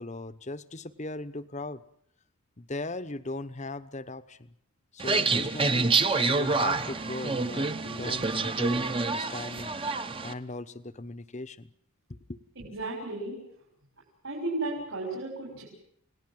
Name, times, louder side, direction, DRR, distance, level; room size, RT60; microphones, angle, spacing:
voice 1, 0.0-1.8 2.6-4.5 4.9-5.9 6.3-11.7 12.3-12.4, left 2 dB, 30° left, 13 dB, 1.0 m, -38 dB
sound 1, 5.0-10.3, right 3 dB, 25° right, 1.0 m, -27 dB
voice 2, 12.6-13.4 14.2-15.6, right 2 dB, 65° right, -2 dB, 7.0 m, -34 dB
29.0 x 18.5 x 7.7 m, 0.71 s
head